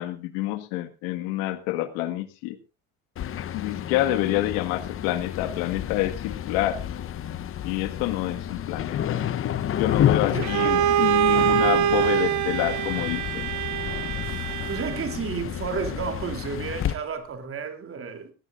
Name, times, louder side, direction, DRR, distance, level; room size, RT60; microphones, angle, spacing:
voice 1, 0.0-2.6 3.5-6.8 7.6-9.2 9.8-13.4, left 15 dB, 90° left, 1.7 m, -28 dB
sound 1, 3.2-16.9, left 10 dB, 40° left, 0.9 m, -30 dB
Bowed string instrument, 10.4-15.2, right 10 dB, 60° right, 1.1 m, -24 dB
voice 2, 14.7-18.3, right 6 dB, 40° right, 3.0 m, -32 dB
18.5 x 17.5 x 2.5 m
cardioid pair, 105°, 33 cm